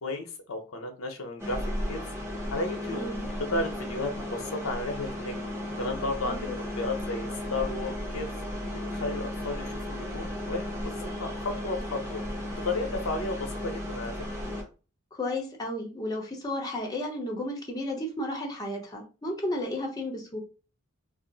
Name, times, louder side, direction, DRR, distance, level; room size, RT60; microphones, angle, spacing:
voice 1, 0.0-1.6 1.9-2.0 2.5-3.0 3.4-5.4 5.8-6.5 6.8-8.3 8.7-10.9 11.2-12.2 12.6-14.1, left 2 dB, 80° left, 4 dB, 0.7 m, -33 dB
sound 1, 1.4-14.6, left 1 dB, 15° right, 0.9 m, -35 dB
voice 2, 2.9-3.3 6.2-6.5 15.1-20.4, left 1 dB, 20° left, -1 dB, 0.7 m, -33 dB
2.5 x 2.0 x 3.8 m, 0.34 s
head